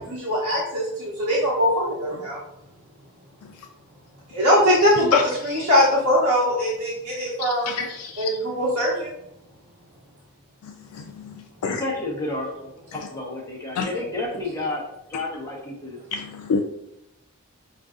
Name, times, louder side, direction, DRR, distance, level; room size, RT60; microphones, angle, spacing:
voice 1, 0.2-2.4 4.3-7.9 8.2-9.1, equal, 80° right, -7 dB, 0.8 m, -21 dB
voice 2, 7.4-8.3 11.6-11.8 13.8-13.9 16.1-16.6, left 6 dB, 85° left, 6 dB, 0.3 m, -25 dB
voice 3, 11.6-14.8 15.1-16.0, left 2 dB, 10° left, -3 dB, 0.8 m, -30 dB
5.2 x 2.5 x 2.4 m, 0.82 s
head